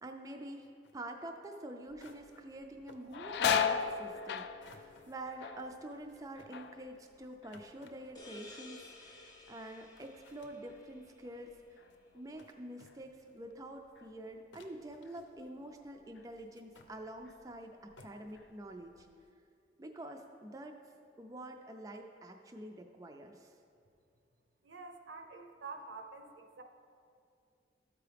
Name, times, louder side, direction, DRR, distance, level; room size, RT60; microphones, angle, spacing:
voice 1, 0.0-11.5 12.1-19.1 19.8-20.8 21.2-23.5, right 1 dB, 20° right, 3 dB, 0.3 m, -47 dB
sound 1, 0.6-0.9 1.5-1.6 2.0-2.6 2.9-3.1 4.6-5.2 5.9-8.9 9.7-9.8 10.0-10.6 11.6-12.0 12.4-12.5 12.8-13.4 14.0-14.1 14.5-15.6 16.3-16.9 17.6-17.7 18.0-18.3, left 2 dB, 80° left, 0.7 m, -60 dB
sound 2, 1.9-2.3 2.6-8.2 8.5-9.1 9.6-12.5 12.9-13.0 14.0-14.2 14.6-15.7 16.2-16.3 16.9-17.6 17.9-19.0, left 7 dB, 65° left, 0.3 m, -38 dB
sound 3, 8.1-11.6, left 3 dB, 20° left, 0.7 m, -55 dB
voice 2, 24.6-26.6, right 4 dB, 85° right, 4 dB, 0.7 m, -48 dB
13.0 x 4.7 x 3.4 m, 2.4 s
head